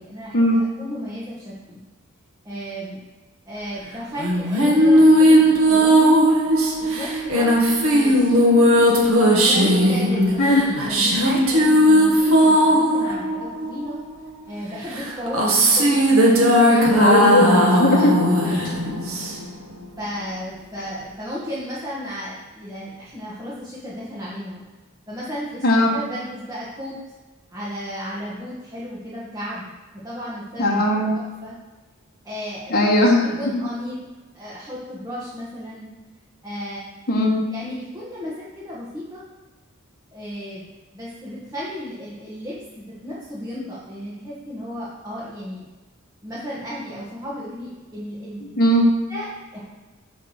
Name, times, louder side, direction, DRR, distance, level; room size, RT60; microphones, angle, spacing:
voice 1, 0.0-1.8 2.4-3.0 3.5-5.4 5.7-6.4 6.8-7.6 7.9-8.4 9.3-10.4 10.7-14.0 14.5-17.1 17.9-18.9 20.0-24.6 25.1-25.6 25.9-27.0 27.5-29.7 30.0-30.7 31.1-31.5 32.2-32.8 33.4-34.0 34.3-35.9 36.4-36.9 37.5-39.2 40.1-40.7 40.9-45.6 46.2-48.5 49.1-49.3 49.5-49.6, equal, 15° right, -9 dB, 1.5 m, -33 dB
sound 1, 4.2-14.1 14.9-19.6, equal, 80° right, 1.4 m, -17 dB
voice 2, 17.0-18.1 18.9-19.0 25.6-25.9 30.6-31.1 32.7-33.5 37.1-37.4 48.6-48.8, left 1 dB, 45° left, -2 dB, 1.2 m, -18 dB
8.4 x 3.5 x 6.3 m, 1.2 s
head